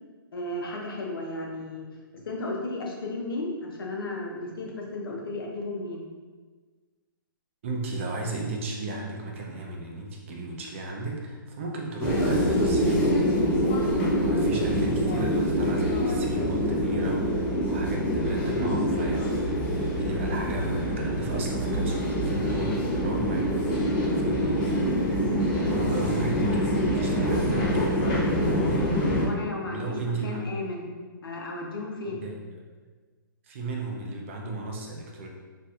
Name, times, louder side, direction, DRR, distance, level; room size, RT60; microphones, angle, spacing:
voice 1, 0.3-1.8 2.1-6.0 29.1-30.8 31.2-32.2, left 2 dB, 80° left, -1 dB, 0.8 m, -34 dB
voice 2, 7.6-13.2 13.8-19.6 20.0-28.1 29.6-30.4 32.1-32.4 33.4-35.3, right 2 dB, 35° right, 0 dB, 0.5 m, -35 dB
sound 1, 12.0-29.3, equal, 25° left, 0.8 m, -25 dB
4.1 x 2.6 x 2.4 m, 1.4 s
hypercardioid pair, 160°, 12 cm